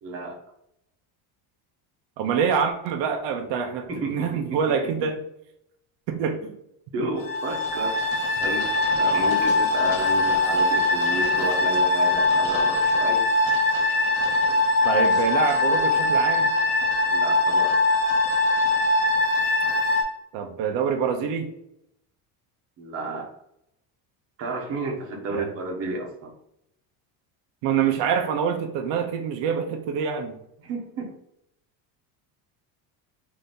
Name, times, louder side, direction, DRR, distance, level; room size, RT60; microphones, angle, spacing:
voice 1, 0.0-0.3 3.9-5.1 6.9-8.0 8.4-13.2 17.1-17.8 22.8-23.3 24.4-26.3 29.0-29.1 30.6-31.1, right 2 dB, 35° right, -1 dB, 0.9 m, -32 dB
voice 2, 2.2-5.2 6.1-6.6 14.8-16.5 20.3-21.5 25.3-25.5 27.6-30.4, right 7 dB, 85° right, 4 dB, 0.7 m, -25 dB
sound 1, 7.2-20.0, left 2 dB, 80° left, 1.6 m, -22 dB
4.0 x 2.8 x 3.6 m, 0.76 s
cardioid pair, 175°, 42 cm